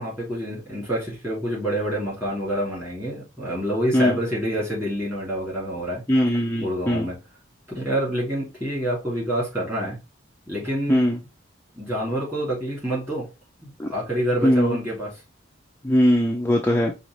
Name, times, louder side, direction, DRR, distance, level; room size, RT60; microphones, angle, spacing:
voice 1, 0.0-6.0 6.6-7.2 7.7-10.0 10.5-11.1 11.8-13.3 13.6-15.1, equal, 10° right, 2.6 m, -27 dB
voice 2, 6.1-7.1 10.9-11.2 13.8-13.9 14.4-14.8 15.8-16.9, equal, 10° left, 0.4 m, -20 dB
5.1 x 2.8 x 3.1 m
head